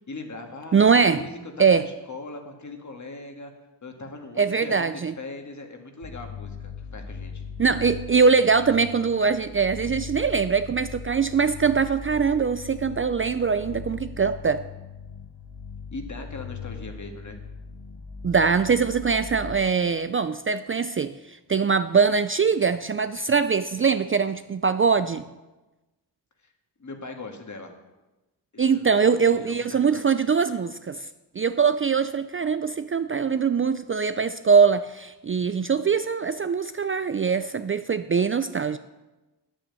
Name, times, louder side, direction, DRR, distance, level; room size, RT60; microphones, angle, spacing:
voice 1, 0.1-3.5 3.8-7.4 15.9-17.4 26.4-26.5 26.8-27.7 28.5-28.9 29.3-30.1, left 3 dB, 45° left, 4 dB, 1.9 m, -40 dB
voice 2, 0.7-1.2 1.6-1.9 4.4-5.1 7.6-14.6 18.2-25.2 28.6-31.1 31.4-38.8, right 5 dB, 30° right, 11 dB, 0.4 m, -22 dB
sound 1, 6.0-19.6, left 5 dB, 60° left, 1.4 m, -39 dB
10.0 x 9.1 x 7.6 m, 1.1 s
cardioid pair, 85°, 41 cm